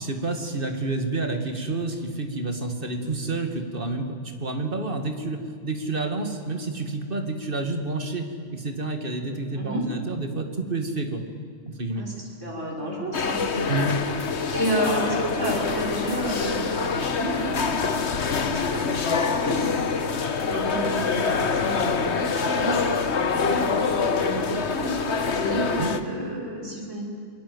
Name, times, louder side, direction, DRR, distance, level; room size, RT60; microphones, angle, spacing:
voice 1, 0.0-11.2 11.7-12.1 13.7-14.0 25.8-25.9, right 2 dB, 45° right, 5 dB, 2.4 m, -29 dB
voice 2, 12.4-13.4 14.5-19.7 20.4-27.0, right 1 dB, 70° right, -3 dB, 6.5 m, -30 dB
sound 1, 13.1-26.0, left 5 dB, 60° left, 1.5 m, -25 dB
28.0 x 21.5 x 8.1 m, 2.3 s
omnidirectional pair, 1.3 m